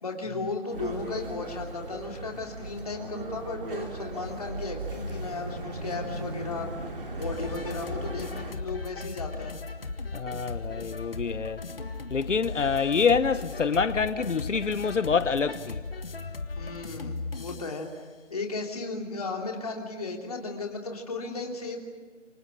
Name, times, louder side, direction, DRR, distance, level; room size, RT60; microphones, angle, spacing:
voice 1, 0.0-9.6 16.5-18.0 18.3-21.8, left 3 dB, 30° left, 3.1 m, -35 dB
sound 1, 0.7-8.5, right 2 dB, 45° right, 3.0 m, -37 dB
sound 2, 7.2-17.8, left 3 dB, 50° left, 1.7 m, -37 dB
voice 2, 10.1-11.6 12.1-15.8, left 5 dB, 75° left, 1.1 m, -26 dB
28.5 x 25.5 x 6.4 m
hypercardioid pair, 180°, 37 cm